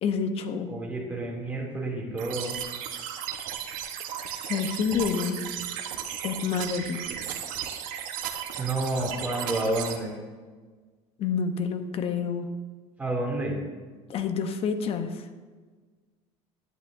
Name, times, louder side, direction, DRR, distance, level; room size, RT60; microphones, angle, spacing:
voice 1, 0.0-0.8 4.4-5.4 6.2-7.0 11.2-12.5 14.1-15.2, left 6 dB, 45° left, 9 dB, 0.8 m, -28 dB
voice 2, 0.6-2.6 8.6-10.1 13.0-13.5, right 2 dB, 10° right, -3 dB, 2.5 m, -30 dB
sound 1, 2.2-10.0, right 9 dB, 70° right, 1.0 m, -35 dB
11.0 x 10.5 x 2.6 m, 1.4 s
cardioid pair, 135°, 14 cm